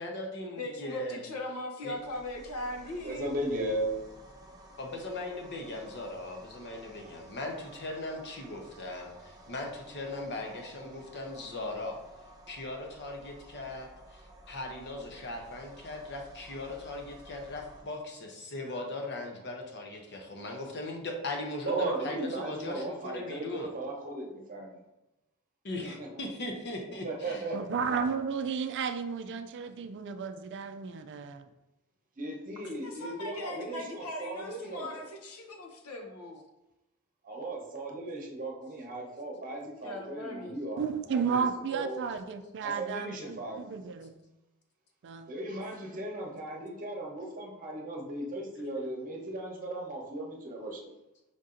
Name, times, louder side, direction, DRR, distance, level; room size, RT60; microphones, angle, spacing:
voice 1, 0.0-1.2 1.8-2.0 4.8-12.0 12.5-23.7 25.6-27.5, left 2 dB, 55° left, 2 dB, 0.9 m, -39 dB
voice 2, 0.6-3.3 32.8-36.4 39.8-40.5, left 1 dB, 85° left, 2 dB, 0.9 m, -39 dB
sound 1, 1.9-17.8, right 1 dB, 15° right, 0.7 m, -53 dB
voice 3, 3.0-3.9 21.6-24.8 25.8-26.2 27.0-27.6 32.2-35.0 37.2-41.4 41.7-42.0 42.6-43.7 45.3-50.9, right 2 dB, 40° right, -1 dB, 1.0 m, -36 dB
voice 4, 27.5-31.4 40.8-44.2 45.0-45.3, right 6 dB, 55° right, 8 dB, 0.4 m, -33 dB
5.1 x 2.7 x 3.7 m, 0.94 s
head